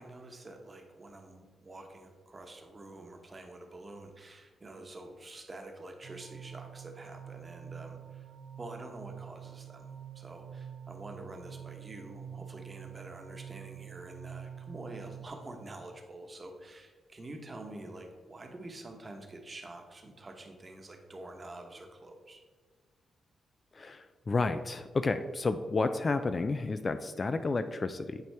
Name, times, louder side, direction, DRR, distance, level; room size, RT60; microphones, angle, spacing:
voice 1, 0.0-8.3 8.6-9.9 10.1-22.4, right 2 dB, 30° right, 3 dB, 1.0 m, -47 dB
sound 1, 6.0-15.3, right 9 dB, 65° right, 0.6 m, -46 dB
voice 2, 23.7-28.2, left 3 dB, 35° left, 10 dB, 0.3 m, -31 dB
9.2 x 4.3 x 3.4 m, 1.4 s
cardioid pair, 105°, 0 cm